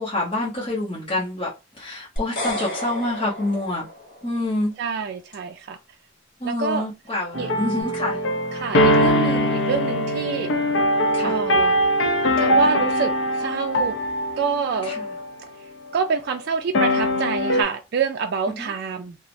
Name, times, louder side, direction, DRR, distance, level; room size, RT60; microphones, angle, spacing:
voice 1, 0.0-1.5 1.8-3.9 4.2-4.7 6.4-8.2 11.1-11.4 14.8-15.1 18.6-18.7, left 1 dB, 30° left, 0.8 m, -27 dB
sound 1, 2.2-4.5, left 1 dB, 45° left, 1.1 m, -32 dB
voice 2, 4.8-5.8 6.4-6.8 7.3-7.5 8.5-10.5 11.2-11.9 12.4-14.0 14.4-14.9 15.9-19.2, right 6 dB, 55° right, 0.3 m, -27 dB
sound 2, 7.3-15.3 15.9-16.1 16.7-17.6, equal, 70° left, 0.6 m, -21 dB
3.0 x 2.0 x 2.5 m
head